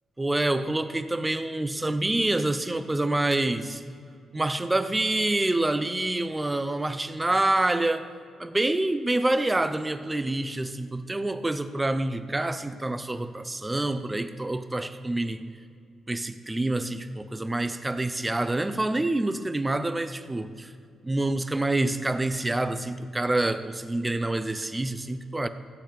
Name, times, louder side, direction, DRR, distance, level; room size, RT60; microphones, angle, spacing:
voice 1, 0.2-3.8 4.3-8.1 8.4-15.4 16.1-20.7 21.0-25.5, right 2 dB, 15° right, 11 dB, 0.6 m, -27 dB
16.0 x 8.7 x 5.2 m, 2.3 s
cardioid pair, 115°, 0 cm